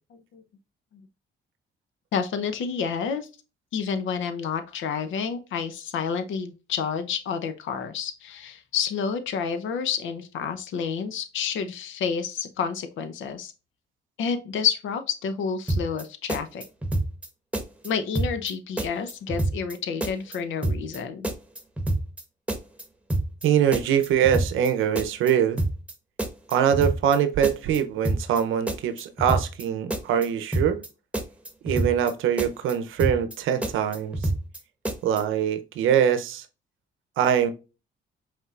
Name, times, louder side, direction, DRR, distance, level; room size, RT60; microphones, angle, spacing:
voice 1, 2.1-3.3 3.7-13.5 14.2-16.6 17.8-21.3, left 6 dB, 80° left, 0.8 m, -29 dB
sound 1, 15.7-16.0 16.3-17.3 17.5-17.9 18.1-18.5 18.8-19.7 20.0-20.4 20.6-21.0 21.2-22.2 22.5-22.8 23.1-23.5 23.7-24.7 24.9-25.3 25.6-25.9 26.2-27.2 27.4-27.8 28.0-28.4 28.7-29.6 29.9-30.3 30.5-30.9 31.1-32.1 32.4-32.7 33.0-33.4 33.6-34.6 34.8-35.2, right 2 dB, 5° right, 1.0 m, -27 dB
voice 2, 23.4-25.6 26.5-30.8 31.6-34.2 35.0-36.4 37.2-37.5, right 9 dB, 85° right, 0.7 m, -23 dB
5.4 x 3.6 x 2.4 m
cardioid pair, 90°, 20 cm